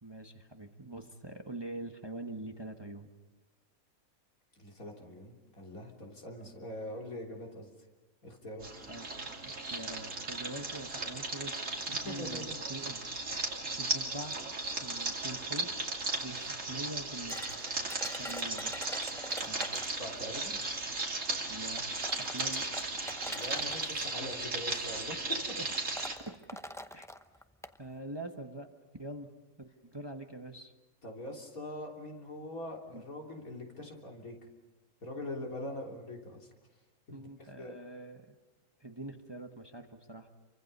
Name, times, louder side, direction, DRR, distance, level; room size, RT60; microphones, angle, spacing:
voice 1, 0.0-3.1 6.3-6.5 8.9-9.1 9.4-14.4 14.8-15.7 16.2-17.4 18.2-18.9 19.5-19.7 21.5-21.9 22.2-23.0 25.6-25.7 26.3-26.4 26.9-27.1 27.8-28.7 29.0-29.3 29.6-30.7 32.9-33.0 37.1-38.3 38.8-40.3, right 2 dB, 20° right, 5 dB, 1.2 m, -44 dB
voice 2, 4.6-7.7 8.2-8.7 12.0-12.6 19.4-20.6 23.2-25.2 31.0-34.4 35.0-36.5 37.1-37.7, left 1 dB, 75° left, 0 dB, 3.8 m, -43 dB
sound 1, 8.6-26.1, right 3 dB, 60° right, 3.0 m, -36 dB
sound 2, 17.3-20.0 21.1-21.2 21.8-23.9 24.8-25.1 25.3-25.4 25.7-27.8, equal, 5° left, 0.5 m, -45 dB
29.0 x 24.5 x 5.5 m, 1.2 s
omnidirectional pair, 1.5 m